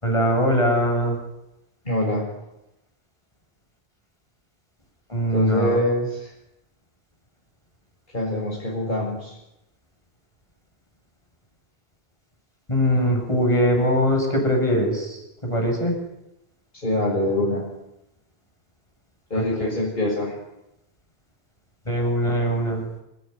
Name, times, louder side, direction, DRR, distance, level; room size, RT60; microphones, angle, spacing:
voice 1, 0.0-1.2 5.1-5.8 12.7-15.2 15.4-15.9 19.4-19.7 21.9-22.8, equal, 30° left, 2 dB, 8.2 m, -21 dB
voice 2, 1.9-2.3 5.3-6.3 8.1-9.3 16.7-17.6 19.3-20.3, left 1 dB, 50° left, -3 dB, 7.1 m, -24 dB
29.5 x 18.5 x 9.7 m, 0.88 s
omnidirectional pair, 1.1 m